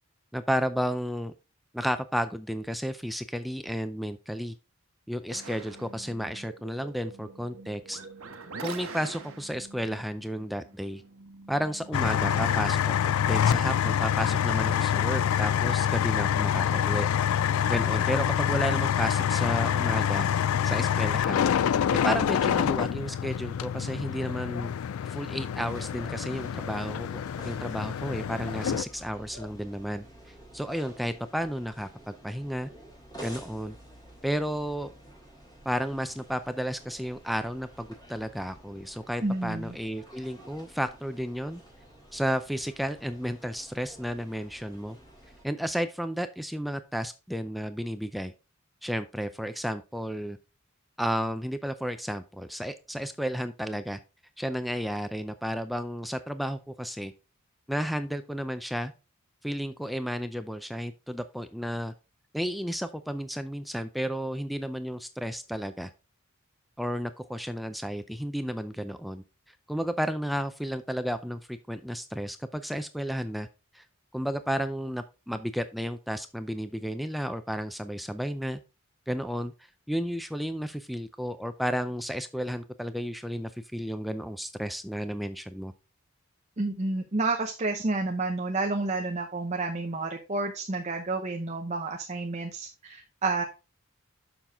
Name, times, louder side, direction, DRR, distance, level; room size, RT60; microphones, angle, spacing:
voice 1, 0.3-1.3 1.7-4.5 5.1-8.0 8.6-11.0 11.5-12.9 13.3-17.1 17.7-20.3 20.6-21.5 21.9-24.7 25.1-30.0 30.5-31.9 32.2-32.7 33.2-33.8 34.2-34.9 35.7-41.6 42.1-45.0 45.4-48.3 48.8-50.4 51.0-54.0 54.4-57.1 57.7-58.9 59.4-61.9 62.3-65.9 66.8-69.2 69.7-73.5 73.7-73.8 74.1-78.6 79.1-79.5 79.9-85.7, equal, ahead, 9 dB, 0.4 m, -32 dB
sound 1, 5.3-12.8, right 3 dB, 85° right, 1.1 m, -44 dB
sound 2, 11.9-28.8, left 9 dB, 85° left, 0.3 m, -26 dB
sound 3, 25.7-45.4, right 1 dB, 20° left, 3.8 m, -50 dB
voice 2, 39.2-39.8 86.6-93.4, right 3 dB, 35° right, 3 dB, 0.8 m, -30 dB
7.0 x 5.8 x 3.5 m, 0.29 s
head